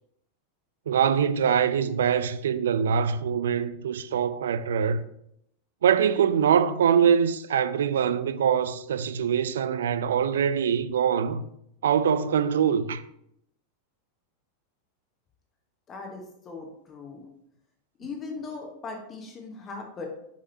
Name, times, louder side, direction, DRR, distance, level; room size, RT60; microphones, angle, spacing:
voice 1, 0.9-5.0 5.8-11.4 11.8-13.0, right 8 dB, 65° right, 0.3 m, -23 dB
voice 2, 15.9-17.2 18.0-20.1, left 4 dB, 25° left, 1.1 m, -39 dB
6.5 x 5.4 x 2.7 m
figure-of-eight pair, 90°, 0 cm